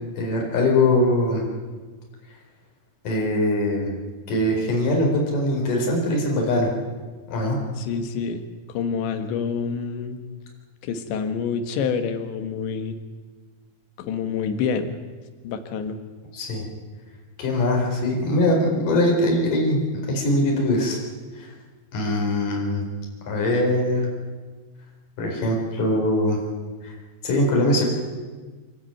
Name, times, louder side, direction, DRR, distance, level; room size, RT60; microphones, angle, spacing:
voice 1, 0.2-1.5 3.0-4.0 4.3-6.7 7.3-7.6 16.3-16.6 17.4-19.8 20.1-21.0 21.4-21.5 21.9-22.9 23.3-24.1 25.2-26.4 26.8-26.9 27.2-27.9, left 1 dB, 50° left, -1 dB, 5.8 m, -22 dB
voice 2, 7.8-8.4 8.7-10.2 10.8-13.0 14.0-15.0 15.4-16.0, left 6 dB, 80° left, 8 dB, 3.8 m, -27 dB
26.5 x 12.0 x 9.2 m, 1.4 s
omnidirectional pair, 5.1 m